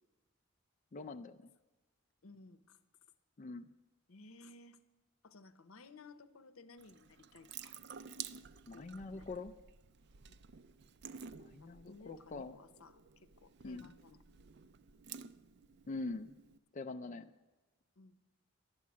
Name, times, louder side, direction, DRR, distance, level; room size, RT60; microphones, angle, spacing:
voice 1, 0.9-1.5 3.4-3.7 8.7-9.5 11.4-12.5 13.6-13.9 15.9-16.3 16.7-17.3, left 3 dB, 35° left, 7 dB, 0.4 m, -44 dB
voice 2, 2.2-2.8 4.1-4.8 5.2-7.8 8.7-9.3 11.6-14.2 18.0-18.2, left 3 dB, 85° left, 11 dB, 0.8 m, -58 dB
Water tap faucet / Sink (filling or washing) / Drip, 6.8-16.6, right 7 dB, 50° right, 0.4 m, -52 dB
12.0 x 7.4 x 9.6 m, 1.2 s
head